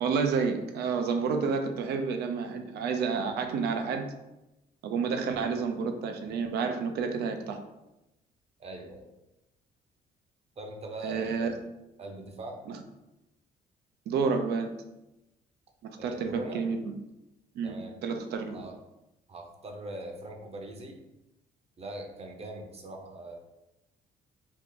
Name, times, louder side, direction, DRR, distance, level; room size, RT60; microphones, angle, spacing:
voice 1, 0.0-4.1 4.8-7.6 11.0-11.6 12.7-12.8 14.1-14.7 15.8-16.9 17.6-17.8 18.0-18.6, right 5 dB, 75° right, 6 dB, 0.5 m, -30 dB
voice 2, 8.6-9.1 10.6-11.7 12.0-12.6 16.0-16.6 17.6-18.0 18.5-18.8 19.3-21.0 21.8-23.4, right 1 dB, 40° right, 2 dB, 0.7 m, -41 dB
2.9 x 2.4 x 3.7 m, 0.93 s
cardioid pair, 80°, 17 cm